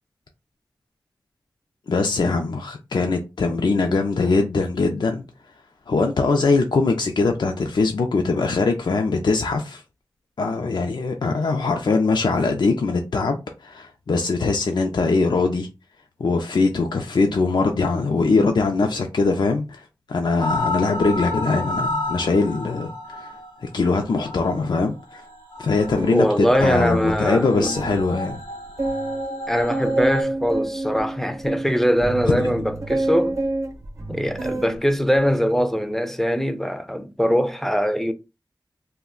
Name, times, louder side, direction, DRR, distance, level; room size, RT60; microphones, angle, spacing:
voice 1, 1.9-5.2 5.9-9.8 10.4-15.7 16.2-25.2 25.6-28.4 32.2-32.5, left 3 dB, 65° left, 0.4 m, -22 dB
sound 1, 20.4-30.2, left 2 dB, 90° left, 0.8 m, -32 dB
sound 2, 25.7-28.1 28.4-28.5 28.8-34.8 35.1-35.6, right 2 dB, 40° right, 0.7 m, -29 dB
voice 2, 26.1-27.8 29.5-33.4 34.1-38.1, equal, 5° left, 0.4 m, -22 dB
2.3 x 2.1 x 3.6 m
cardioid pair, 50°, 8 cm